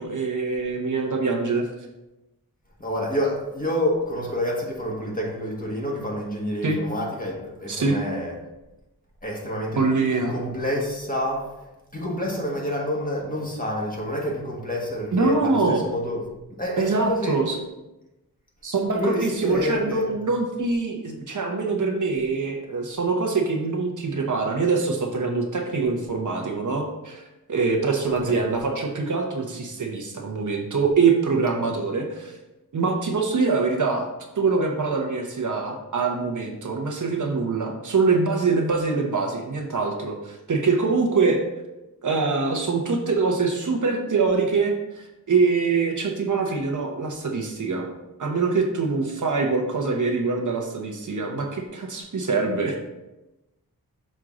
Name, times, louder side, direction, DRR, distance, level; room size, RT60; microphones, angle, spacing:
voice 1, 0.0-1.7 6.6-6.8 7.7-8.0 9.8-10.3 15.1-15.8 16.8-17.6 18.6-27.2 27.5-32.4 32.7-34.1 34.4-41.4 42.0-47.9 48.2-52.8, right 4 dB, 55° right, 2 dB, 0.9 m, -24 dB
voice 2, 2.8-8.3 9.2-9.8 10.1-11.5 11.9-16.2 16.6-17.4 18.9-20.1 28.1-28.4, equal, 20° left, -2 dB, 1.6 m, -28 dB
6.4 x 4.5 x 3.7 m, 0.99 s
wide cardioid pair, 105°, 37 cm